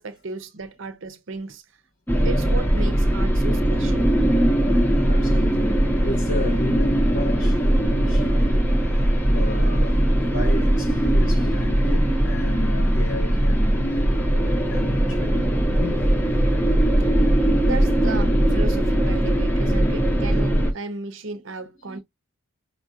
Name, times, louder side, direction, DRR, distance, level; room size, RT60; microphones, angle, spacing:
voice 1, 0.0-1.6 2.2-4.1 17.6-22.0, right 3 dB, 65° right, 0.7 m, -34 dB
sound 1, 2.1-20.7, right 1 dB, 10° left, 0.8 m, -20 dB
voice 2, 5.0-15.5 15.8-16.1 21.8-22.0, left 1 dB, 90° left, 3.3 m, -33 dB
5.5 x 2.4 x 2.7 m
head